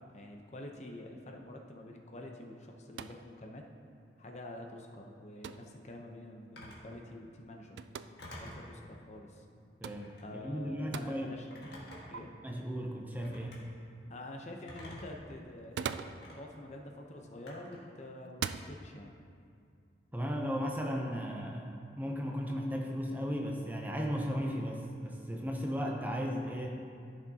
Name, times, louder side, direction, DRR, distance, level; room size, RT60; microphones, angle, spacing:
voice 1, 0.0-3.6 4.2-7.8 8.3-9.4 10.2-11.5 12.1-12.3 14.1-19.2, left 1 dB, 40° left, 2 dB, 0.7 m, -47 dB
sound 1, 2.9-3.3 5.4-5.7 7.8-8.1 9.8-10.1 10.9-11.1 12.1-12.2 15.5-16.3 17.4-17.7 18.3-18.7, right 7 dB, 75° right, 0.3 m, -39 dB
Telephone, 6.6-6.9 8.2-8.7 9.9-10.3 11.5-12.2 13.2-13.6 14.7-15.2 16.2-16.4 17.5-17.9, left 1 dB, 65° left, 1.7 m, -48 dB
voice 2, 9.8-11.4 12.4-13.6 20.1-26.8, equal, 10° right, 0 dB, 0.6 m, -36 dB
14.5 x 6.2 x 2.8 m, 2.4 s
head